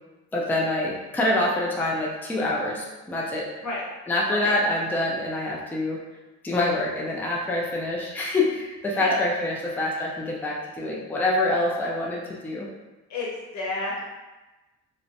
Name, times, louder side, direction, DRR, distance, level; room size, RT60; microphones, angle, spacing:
voice 1, 0.3-3.5 4.1-6.0 6.4-12.7, left 2 dB, 5° left, -3 dB, 0.4 m, -26 dB
voice 2, 13.1-14.1, left 2 dB, 70° left, -5 dB, 0.9 m, -30 dB
2.4 x 2.1 x 2.6 m, 1.1 s
cardioid pair, 90°, 30 cm